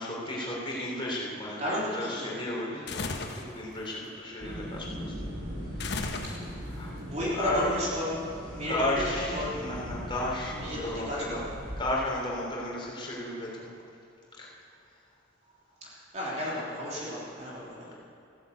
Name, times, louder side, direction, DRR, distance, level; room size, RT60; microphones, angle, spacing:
voice 1, 0.0-5.1 6.7-6.9 7.4-7.7 8.7-11.4 11.8-13.7 14.4-14.5, left 1 dB, 25° left, -4 dB, 3.5 m, -33 dB
voice 2, 1.6-2.9 6.2-6.4 7.0-9.6 10.6-11.5 15.8-17.9, equal, 35° right, -6 dB, 3.3 m, -34 dB
sound 1, 2.9-3.5 5.8-6.7, left 3 dB, 55° left, 1.2 m, -34 dB
sound 2, 4.4-11.8, equal, 70° right, 4.1 m, -39 dB
15.0 x 10.5 x 8.2 m, 2.6 s
head